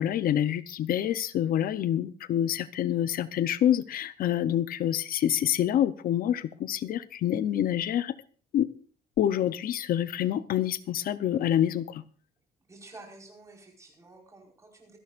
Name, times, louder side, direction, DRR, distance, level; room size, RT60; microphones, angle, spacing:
voice 1, 0.0-8.1 8.5-8.7 9.2-12.0, left 11 dB, 65° left, 14 dB, 0.7 m, -27 dB
voice 2, 12.7-15.0, right 2 dB, 20° right, 1 dB, 4.8 m, -50 dB
26.0 x 11.0 x 2.5 m, 0.41 s
cardioid pair, 165°, 16 cm